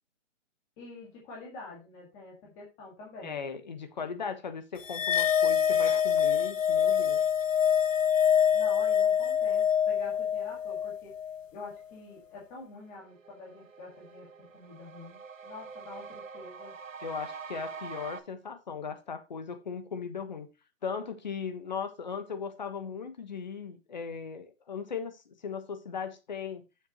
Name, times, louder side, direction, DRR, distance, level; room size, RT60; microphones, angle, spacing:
voice 1, 0.8-3.4 8.5-11.1 11.5-16.8, left 3 dB, 10° left, 1.8 m, -47 dB
voice 2, 3.2-7.2 17.0-20.5 20.8-26.6, left 6 dB, 35° left, 1.2 m, -38 dB
sound 1, 4.9-11.4, left 8 dB, 80° left, 0.9 m, -25 dB
sound 2, 12.4-12.5 12.8-18.2, right 5 dB, 90° right, 1.3 m, -45 dB
11.5 x 7.2 x 3.0 m
hypercardioid pair, 175°, 38 cm